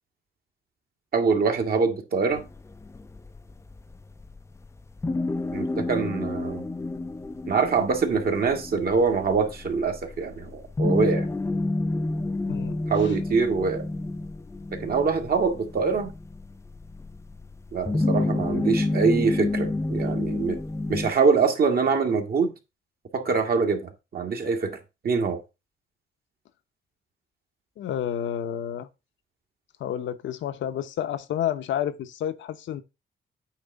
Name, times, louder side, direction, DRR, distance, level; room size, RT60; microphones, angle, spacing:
voice 1, 1.1-2.4 5.5-6.7 7.5-11.3 12.9-13.8 14.7-16.1 17.7-20.6 20.9-22.5 23.1-24.8 25.0-25.4, right 5 dB, 50° right, 1.7 m, -24 dB
sound 1, 2.3-21.1, left 2 dB, 15° left, 0.5 m, -30 dB
voice 2, 12.5-13.1 27.8-28.9 29.8-32.8, left 10 dB, 70° left, 0.9 m, -30 dB
8.7 x 3.3 x 5.2 m
cardioid pair, 90°, 20 cm